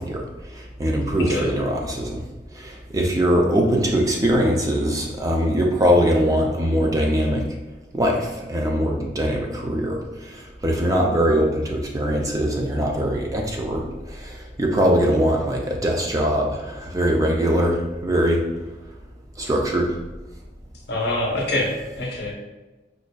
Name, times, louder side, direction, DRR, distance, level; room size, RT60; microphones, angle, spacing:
voice 1, 0.0-2.2 2.5-7.5 7.9-18.4 19.4-19.9, equal, 20° right, 0 dB, 0.4 m, -22 dB
voice 2, 20.9-22.3, left 1 dB, 70° left, -1 dB, 0.8 m, -25 dB
5.0 x 2.4 x 2.2 m, 1.1 s
head